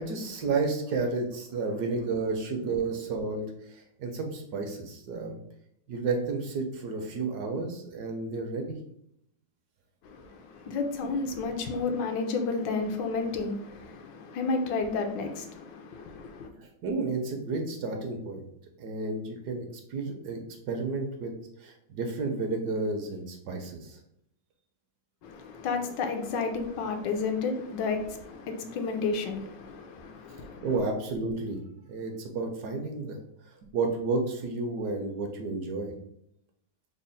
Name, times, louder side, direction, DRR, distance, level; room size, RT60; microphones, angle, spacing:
voice 1, 0.0-5.4 5.9-8.8 16.6-18.4 18.8-20.4 20.7-21.3 21.6-24.0 30.6-33.2 33.7-35.9, right 3 dB, 70° right, 1.1 m, -31 dB
voice 2, 10.0-16.5 25.2-30.7, left 4 dB, 80° left, 1.3 m, -32 dB
4.1 x 2.0 x 3.8 m
omnidirectional pair, 2.0 m